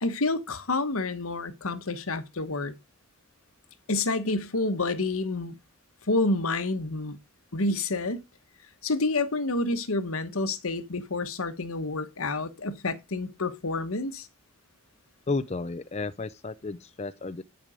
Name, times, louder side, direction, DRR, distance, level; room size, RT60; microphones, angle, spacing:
voice 1, 0.0-2.7 3.9-5.6 6.1-7.2 7.5-8.2 8.8-14.3, left 2 dB, 75° left, 1.2 m, -28 dB
voice 2, 15.3-17.4, left 3 dB, 30° left, 0.5 m, -32 dB
10.5 x 5.3 x 4.9 m
head